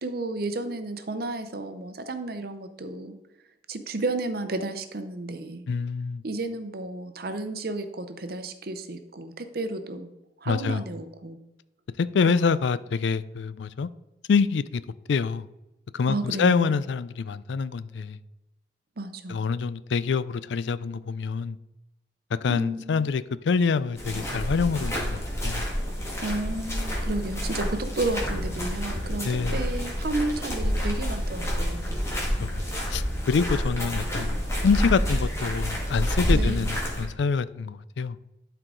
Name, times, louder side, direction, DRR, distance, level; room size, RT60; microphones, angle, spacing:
voice 1, 0.0-3.1 3.7-5.6 6.2-10.1 10.4-11.4 12.3-12.4 16.1-16.8 19.0-19.4 22.5-23.1 26.2-31.9 36.3-36.7, right 2 dB, 55° right, 0.8 m, -32 dB
voice 2, 5.7-6.2 10.5-10.8 12.0-13.9 14.3-14.8 15.1-15.5 15.9-18.2 19.3-21.6 22.4-25.7 29.2-29.6 32.4-32.6 32.9-34.4 34.6-38.2, left 5 dB, 80° left, 0.4 m, -26 dB
sound 1, 24.0-37.0, equal, 15° left, 1.8 m, -28 dB
11.5 x 4.7 x 3.8 m
head